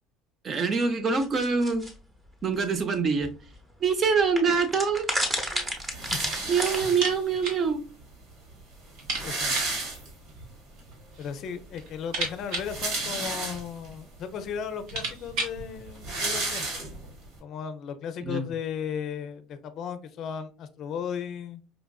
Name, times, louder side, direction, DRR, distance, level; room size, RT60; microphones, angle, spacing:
voice 1, 0.4-1.8 2.4-3.3 3.8-5.1 5.5-5.6 6.5-7.8 18.3-18.5, right 5 dB, 35° right, 0.6 m, -25 dB
sound 1, 1.2-1.9 2.9-3.0 3.2-3.3 4.4-6.8, equal, 15° right, 0.9 m, -30 dB
sound 2, 5.9-7.4 8.2-8.3 8.5-8.6 8.9-10.5 10.9-11.0 12.4-13.9 14.5-14.6 14.9-17.3, right 2 dB, 60° right, 1.7 m, -32 dB
sound 3, 6.9-7.7 7.9-8.0 8.4-8.5 9.0-9.8 10.8-11.3 11.7-13.7 14.3-14.4 14.7-15.7, right 3 dB, 75° right, 1.3 m, -35 dB
voice 2, 9.2-9.7 11.2-16.8 17.4-21.6, left 7 dB, 50° left, 0.5 m, -36 dB
4.9 x 2.4 x 2.3 m
cardioid pair, 125°, 0 cm